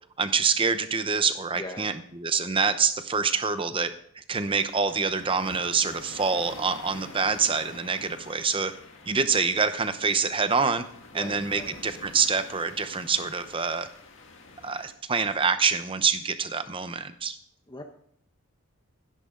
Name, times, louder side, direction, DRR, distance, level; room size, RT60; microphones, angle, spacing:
voice 1, 0.2-1.9 2.2-8.7 9.1-10.9 11.1-13.9 14.6-17.4, right 5 dB, 25° right, 11 dB, 0.8 m, -26 dB
voice 2, 1.5-1.9 11.1-11.8 17.7-17.8, left 1 dB, 20° left, 4 dB, 0.8 m, -40 dB
sound 1, 4.3-14.9, left 3 dB, 65° left, 1.9 m, -47 dB
15.5 x 11.0 x 3.8 m, 0.65 s
head